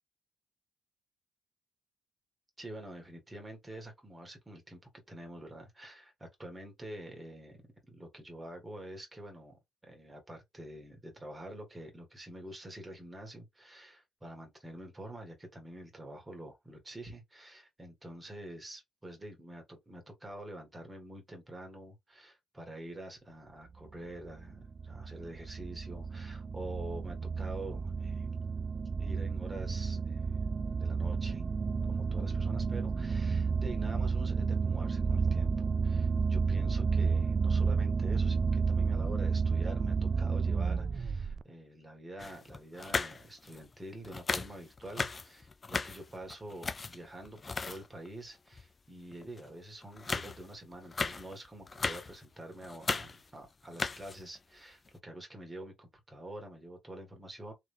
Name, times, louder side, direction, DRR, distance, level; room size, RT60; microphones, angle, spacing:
voice 1, 2.6-4.8 5.1-7.6 7.9-28.3 29.0-30.5 30.8-31.4 31.9-57.5, right 1 dB, 15° right, 1.9 m, -47 dB
sound 1, 23.9-41.4, right 5 dB, 40° right, 0.3 m, -31 dB
sound 2, 42.2-43.7 44.0-48.1 48.5-48.7 49.1-49.5 49.8-52.2 52.5-53.4 53.6-54.4 54.9-55.0, left 4 dB, 30° left, 0.4 m, -37 dB
3.4 x 3.4 x 3.4 m
cardioid pair, 90°, 0 cm